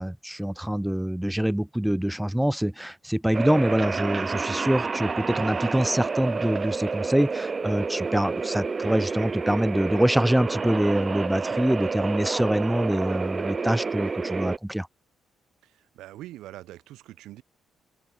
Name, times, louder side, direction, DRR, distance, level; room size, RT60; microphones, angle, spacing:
voice 1, 0.0-14.9, right 1 dB, 5° right, 1.2 m, -25 dB
sound 1, 3.3-14.6, right 4 dB, 30° right, 4.0 m, -29 dB
voice 2, 15.6-17.4, right 15 dB, 90° right, 5.3 m, -43 dB
open air
cardioid pair, 90°, 0 cm